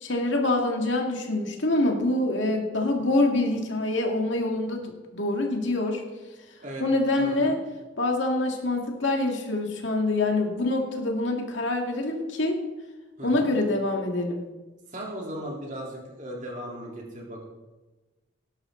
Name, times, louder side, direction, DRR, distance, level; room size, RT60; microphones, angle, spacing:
voice 1, 0.0-6.0 6.8-7.6 8.0-12.6 13.2-14.4, left 2 dB, 80° left, 2 dB, 2.1 m, -25 dB
voice 2, 7.2-7.5 13.2-13.5 14.9-17.4, right 1 dB, 40° right, -2 dB, 3.5 m, -37 dB
18.0 x 11.5 x 3.9 m, 1.2 s
head